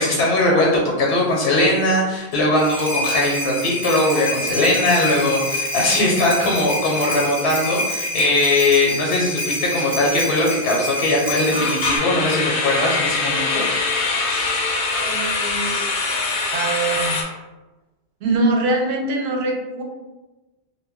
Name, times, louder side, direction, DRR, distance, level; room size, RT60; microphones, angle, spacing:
voice 1, 0.0-13.6, left 2 dB, 90° left, -2 dB, 0.9 m, -20 dB
sound 1, 2.3-12.0, left 1 dB, 20° right, 0.4 m, -27 dB
sound 2, 5.5-5.6 5.9-6.1 6.6-6.7 11.5-17.2, left 3 dB, 60° left, 0.6 m, -23 dB
voice 2, 14.9-15.9 16.5-17.2 18.2-19.8, right 2 dB, 75° right, 1 dB, 0.8 m, -23 dB
2.2 x 2.1 x 3.4 m, 1.1 s
omnidirectional pair, 1.1 m